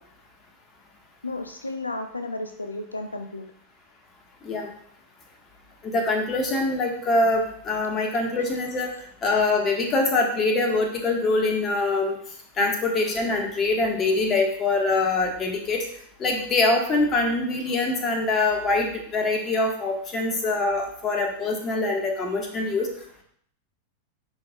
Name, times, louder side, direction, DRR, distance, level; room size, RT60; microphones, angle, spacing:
voice 1, 1.2-3.5 12.6-12.7, left 2 dB, 80° left, 7 dB, 0.4 m, -33 dB
voice 2, 5.8-8.9 9.2-12.1 12.6-15.8 16.2-22.9, left 2 dB, 25° left, 2 dB, 1.4 m, -24 dB
10.0 x 4.3 x 2.3 m, 0.64 s
figure-of-eight pair, 90°, 0 cm